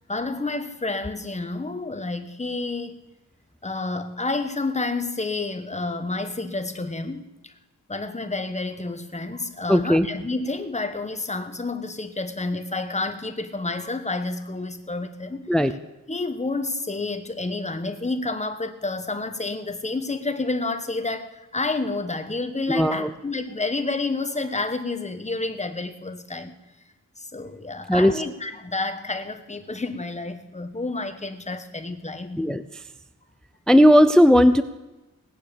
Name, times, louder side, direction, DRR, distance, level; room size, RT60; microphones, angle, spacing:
voice 1, 0.1-3.0 3.6-7.5 7.9-15.5 16.1-26.5 27.2-32.5, left 3 dB, 20° left, 8 dB, 1.2 m, -29 dB
voice 2, 9.7-10.1 15.5-15.7 22.7-23.1 27.9-28.1 32.4-32.6 33.7-34.6, equal, ahead, 13 dB, 0.5 m, -16 dB
18.0 x 9.4 x 6.8 m, 1.0 s
wide cardioid pair, 135°, 33 cm